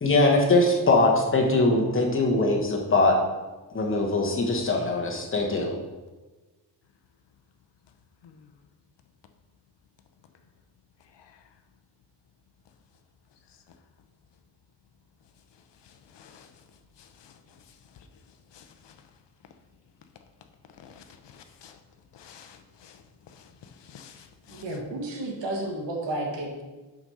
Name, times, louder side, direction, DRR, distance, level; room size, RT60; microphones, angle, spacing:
voice 1, 0.0-3.2 3.7-5.7, left 2 dB, 30° left, 1 dB, 1.1 m, -22 dB
voice 2, 15.8-16.5 17.0-17.6 18.5-19.0 20.8-21.8 22.1-23.0 23.3-24.6, left 7 dB, 85° left, 7 dB, 0.8 m, -51 dB
voice 3, 24.5-26.6, right 1 dB, 85° right, -1 dB, 1.8 m, -32 dB
6.1 x 5.1 x 5.5 m, 1.2 s
wide cardioid pair, 175°, 42 cm